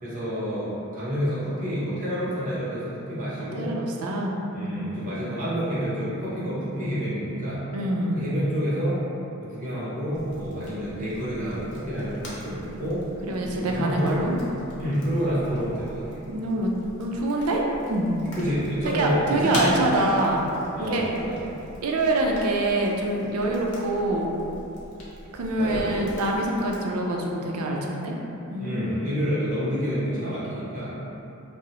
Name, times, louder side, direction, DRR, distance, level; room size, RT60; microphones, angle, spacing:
voice 1, 0.0-3.8 4.5-7.6 8.1-9.0 9.4-13.1 13.4-14.2 14.8-16.3 18.3-19.7 20.8-21.5 25.6-26.1 28.6-31.0, equal, 35° right, -9 dB, 0.9 m, -28 dB
voice 2, 3.6-4.8 7.7-8.2 13.2-14.3 16.3-16.7 17.0-17.6 17.9-18.1 18.9-20.4 20.8-21.0 21.8-24.3 25.3-28.2 28.5-29.0, right 1 dB, 75° right, 0 dB, 0.4 m, -25 dB
sound 1, 10.1-26.8, left 1 dB, 90° left, 0.7 m, -41 dB
2.7 x 2.0 x 3.9 m, 3.0 s
head